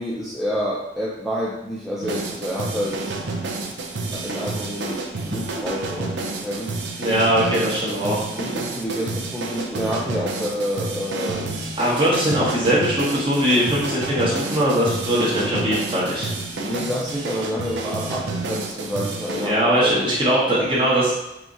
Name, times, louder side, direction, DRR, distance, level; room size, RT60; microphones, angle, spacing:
voice 1, 0.0-3.2 4.1-6.8 7.9-11.4 12.4-12.8 16.5-20.2 20.5-20.9, equal, ahead, -6 dB, 0.5 m, -29 dB
sound 1, 2.0-19.5, right 3 dB, 65° right, 0.6 m, -29 dB
voice 2, 7.0-8.2 11.8-16.3 19.4-21.1, equal, 30° right, -7 dB, 1.6 m, -20 dB
4.8 x 2.9 x 3.8 m, 0.94 s
head